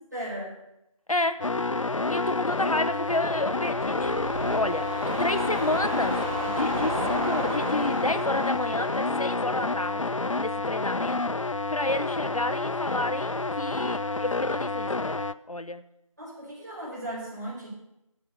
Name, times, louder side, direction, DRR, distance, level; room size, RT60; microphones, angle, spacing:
voice 1, 0.1-0.6 2.9-3.0 16.2-17.7, right 1 dB, 30° right, -7 dB, 4.9 m, -36 dB
voice 2, 1.1-1.5 2.1-10.1 10.4-11.2 11.7-15.8, left 2 dB, 80° left, 10 dB, 0.9 m, -30 dB
sound 1, 1.4-15.3, left 3 dB, 65° left, 0.5 m, -29 dB
sound 2, 2.9-11.2 11.6-11.7, equal, 5° right, 2.3 m, -35 dB
13.5 x 4.8 x 8.2 m, 0.85 s
figure-of-eight pair, 175°, 18 cm